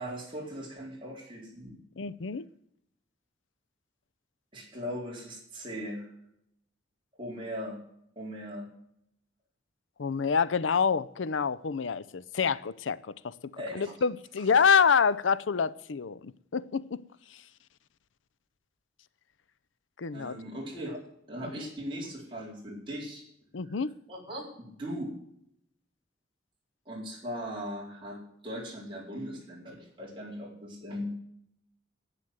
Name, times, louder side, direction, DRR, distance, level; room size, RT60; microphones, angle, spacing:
voice 1, 0.0-1.8 4.5-6.1 7.2-7.8 8.2-8.7 13.6-13.9 20.1-21.0 21.3-23.2 23.7-23.8 24.1-25.1 26.9-31.1, equal, 25° right, 4.2 m, -39 dB
voice 2, 2.0-2.4 10.0-13.3 13.7-17.0 20.0-20.4 23.5-23.9, left 6 dB, 85° left, 0.6 m, -27 dB
11.0 x 9.2 x 7.9 m
head